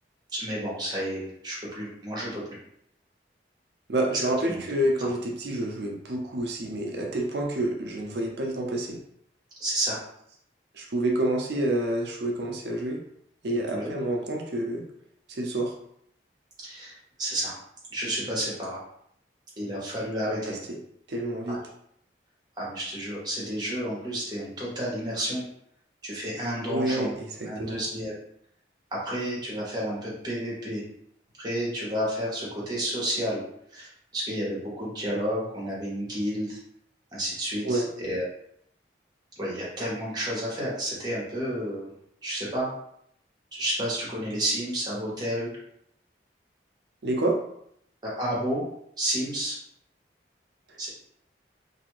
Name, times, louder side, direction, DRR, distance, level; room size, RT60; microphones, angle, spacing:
voice 1, 0.3-2.4 4.5-4.6 5.0-5.1 9.6-10.0 13.7-13.9 16.6-16.9 17.2-17.5 17.9-18.8 19.6-20.5 21.5-21.6 22.6-25.4 26.0-27.2 27.4-28.1 29.0-30.8 31.4-33.4 33.7-36.6 37.1-38.2 39.4-41.9 42.2-42.7 43.5-45.5 48.0-48.6 49.0-49.5 50.8-50.9, equal, 20° right, -6 dB, 1.0 m, -31 dB
voice 2, 3.9-9.0 10.7-13.0 13.4-14.8 15.3-15.7 20.2-20.8 21.1-21.6 26.7-27.8 37.6-37.9 47.0-47.4 50.7-50.9, right 1 dB, 65° right, 1 dB, 0.5 m, -28 dB
2.7 x 2.4 x 3.0 m, 0.72 s
head